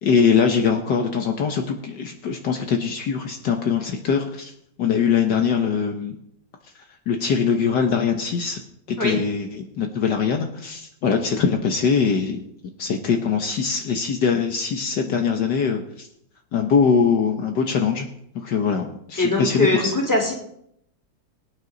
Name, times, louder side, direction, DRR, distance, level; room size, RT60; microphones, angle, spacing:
voice 1, 0.0-4.5 4.8-6.2 7.1-8.6 8.9-12.4 12.8-16.1 16.5-18.1 18.3-19.9, left 6 dB, 65° left, 4 dB, 1.7 m, -22 dB
voice 2, 19.2-20.3, left 2 dB, 10° left, -1 dB, 3.3 m, -21 dB
23.0 x 9.4 x 4.0 m, 0.73 s
omnidirectional pair, 2.0 m